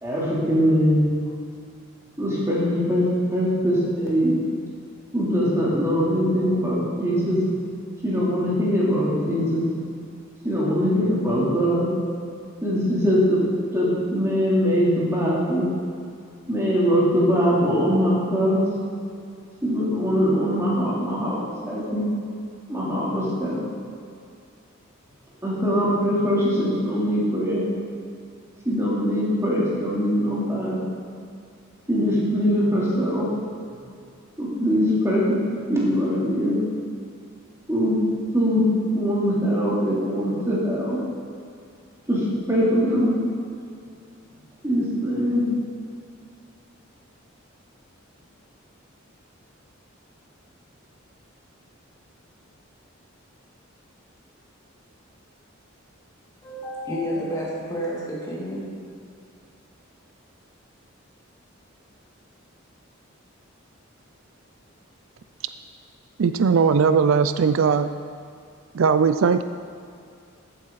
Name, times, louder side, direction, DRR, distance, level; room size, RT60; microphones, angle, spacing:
voice 1, 0.0-1.1 2.2-4.3 5.1-7.4 8.0-9.6 10.4-11.9 12.6-13.4 13.7-15.7 16.5-18.7 19.6-21.4 21.7-22.1 22.7-23.6 25.4-27.7 28.6-30.8 31.9-33.3 34.4-35.4 35.7-36.6 37.7-38.0 38.3-38.6 38.9-41.0 42.1-42.2 42.5-43.2 44.6-45.4, equal, 15° right, -7 dB, 3.3 m, -22 dB
voice 2, 56.4-58.6, equal, 15° left, -6 dB, 2.6 m, -30 dB
voice 3, 66.2-67.9 68.7-69.4, right 6 dB, 75° right, 11 dB, 0.4 m, -19 dB
14.0 x 8.8 x 4.1 m, 2.4 s
head